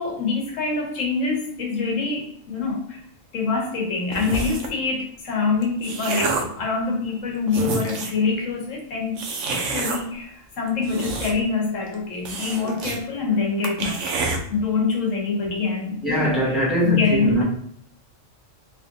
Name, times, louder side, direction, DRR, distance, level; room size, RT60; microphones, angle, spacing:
voice 1, 0.0-3.0 3.3-9.2 9.5-16.6 16.8-17.4, left 4 dB, 80° left, 1.3 m, -25 dB
sound 1, 4.1-4.8 5.5-6.6 7.2-7.3 7.5-8.2 9.2-10.0 10.7-11.6 11.9-12.0 12.3-13.0 13.3-13.4 13.6-14.4, right 3 dB, 75° right, 1.0 m, -28 dB
voice 2, 16.0-17.4, left 1 dB, ahead, 1.0 m, -21 dB
3.7 x 3.2 x 2.5 m
omnidirectional pair, 1.3 m